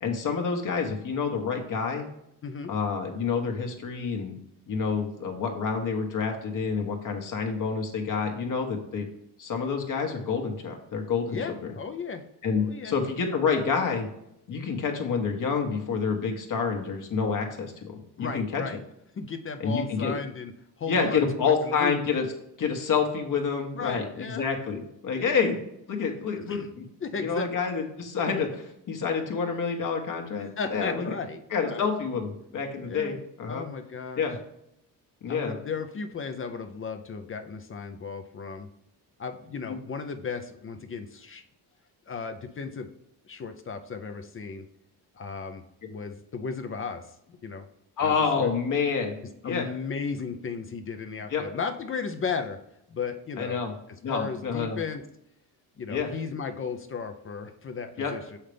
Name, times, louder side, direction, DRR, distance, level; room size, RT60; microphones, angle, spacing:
voice 1, 0.0-2.1 2.7-4.4 4.7-9.1 9.4-11.7 12.4-14.1 14.5-17.9 18.2-18.6 19.6-20.2 20.9-22.2 22.6-25.6 25.9-26.8 27.2-31.1 31.5-33.6 34.2-34.4 35.2-35.5 39.7-39.8 48.0-49.2 49.4-49.7 51.3-51.4 53.4-53.7 54.0-54.8 55.9-56.1 58.0-58.1, left 5 dB, 50° left, 3 dB, 1.3 m, -28 dB
voice 2, 11.3-12.2 12.6-12.9 18.2-18.8 19.1-20.5 20.8-22.0 23.7-24.5 25.1-25.4 26.5-26.7 27.0-27.5 30.4-31.9 32.9-33.2 33.5-34.3 35.3-38.7 39.2-41.4 42.1-42.9 43.3-44.7 45.2-45.6 45.9-47.6 48.0-48.5 49.4-52.6 52.9-53.6 53.9-55.0 55.8-58.4, left 5 dB, 30° left, 7 dB, 0.6 m, -35 dB
6.5 x 5.7 x 3.4 m, 0.78 s
cardioid pair, 115°, 40 cm